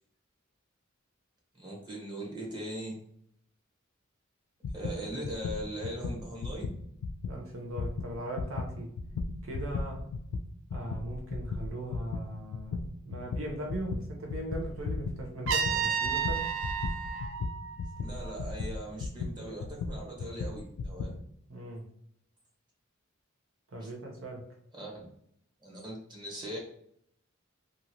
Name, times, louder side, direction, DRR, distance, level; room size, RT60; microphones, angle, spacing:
voice 1, 1.6-3.0 4.7-6.7 18.0-21.1 23.8-23.9 24.7-24.9 25.6-26.6, right 1 dB, 20° right, -2 dB, 0.9 m, -40 dB
sound 1, 4.6-7.4 7.7-21.2, left 3 dB, 75° left, 0.3 m, -36 dB
voice 2, 7.2-8.9 9.4-10.0 10.7-16.5 21.5-21.8 23.7-24.5, right 1 dB, 80° right, 0 dB, 0.9 m, -39 dB
Trumpet, 15.5-18.4, right 7 dB, 65° right, 0.3 m, -32 dB
2.7 x 2.5 x 2.9 m, 0.70 s
head